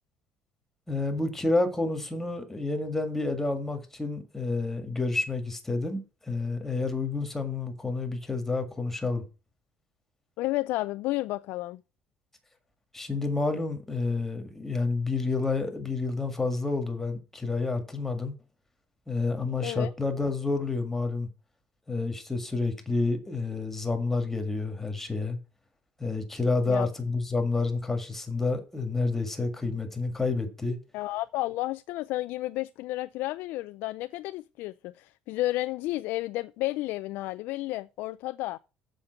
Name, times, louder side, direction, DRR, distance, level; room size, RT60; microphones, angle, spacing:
voice 1, 0.9-9.2 12.9-18.3 19.1-21.3 21.9-25.4 26.0-30.8, left 3 dB, 10° left, 1.8 m, -29 dB
voice 2, 10.4-11.8 19.6-19.9 26.7-26.9 30.9-38.6, left 18 dB, 75° left, 0.3 m, -32 dB
7.3 x 5.1 x 6.9 m
cardioid pair, 130°, 3 cm